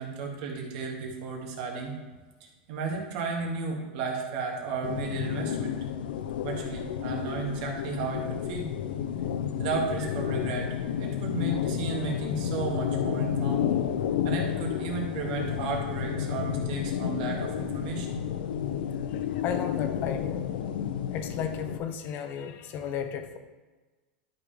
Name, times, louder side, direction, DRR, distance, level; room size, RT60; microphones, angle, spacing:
voice 1, 0.0-1.9 2.4-5.8 6.4-8.7 9.6-13.7 14.2-18.2, right 4 dB, 60° right, 0 dB, 2.1 m, -34 dB
sound 1, 4.8-21.8, left 9 dB, 80° left, 0.6 m, -31 dB
voice 2, 19.4-20.4 21.1-23.4, left 7 dB, 40° left, 7 dB, 1.0 m, -34 dB
11.5 x 5.8 x 3.4 m, 1.3 s
supercardioid pair, 135°, 5 cm